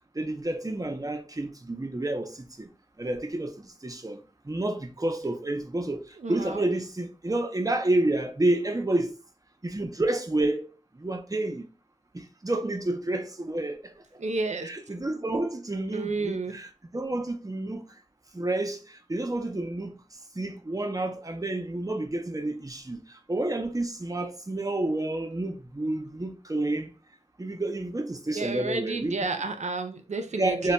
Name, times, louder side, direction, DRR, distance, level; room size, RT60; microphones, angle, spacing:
voice 1, 0.2-2.7 3.0-4.2 4.5-6.0 6.3-9.1 9.6-10.7 11.0-11.7 12.1-13.9 14.6-17.8 18.3-20.0 20.4-23.0 23.3-26.9 27.4-29.3 30.4-30.7, right 2 dB, 30° right, 0.5 m, -29 dB
voice 2, 6.2-6.6 14.2-14.7 15.9-16.5 28.3-30.7, right 3 dB, 90° right, 0.4 m, -31 dB
2.2 x 2.1 x 3.8 m
wide cardioid pair, 40°, 12 cm